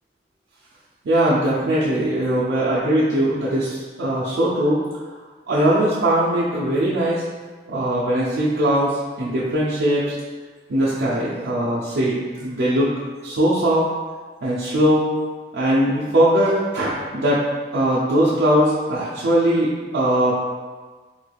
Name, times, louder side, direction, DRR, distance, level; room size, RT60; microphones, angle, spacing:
voice 1, 1.0-4.8 5.5-7.2 7.7-10.2 10.7-13.9 14.4-15.1 15.5-20.3, right 1 dB, 80° right, -8 dB, 0.5 m, -20 dB
3.3 x 3.2 x 2.2 m, 1.4 s
head